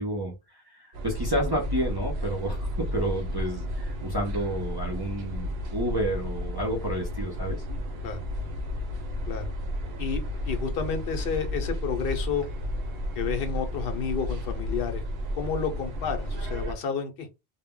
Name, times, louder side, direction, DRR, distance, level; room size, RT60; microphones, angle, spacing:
voice 1, 0.0-7.6, right 1 dB, 30° right, 0.5 m, -30 dB
sound 1, 0.9-16.7, equal, 75° right, 0.8 m, -32 dB
voice 2, 10.4-12.5 13.1-15.0 15.3-17.3, left 6 dB, 70° left, 0.8 m, -30 dB
2.1 x 2.0 x 3.5 m
omnidirectional pair, 1.0 m